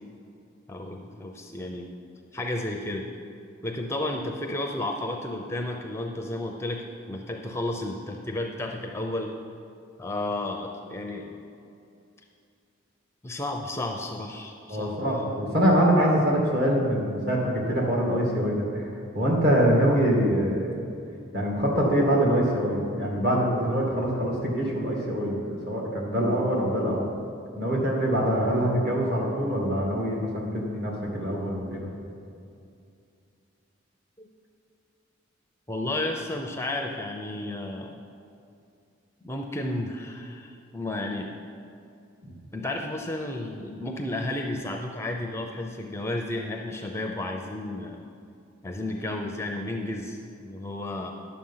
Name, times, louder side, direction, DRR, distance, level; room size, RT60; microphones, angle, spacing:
voice 1, 0.7-1.9 2.3-3.1 3.6-9.3 10.0-11.4 13.2-15.0 34.2-34.3 35.7-38.0 39.2-41.3 42.5-48.0 48.6-51.1, left 1 dB, 15° left, 2 dB, 0.5 m, -32 dB
voice 2, 14.7-20.8 21.3-27.0 27.6-31.8 42.2-42.3, equal, 50° right, -2 dB, 2.3 m, -24 dB
10.5 x 7.1 x 5.6 m, 2.5 s
head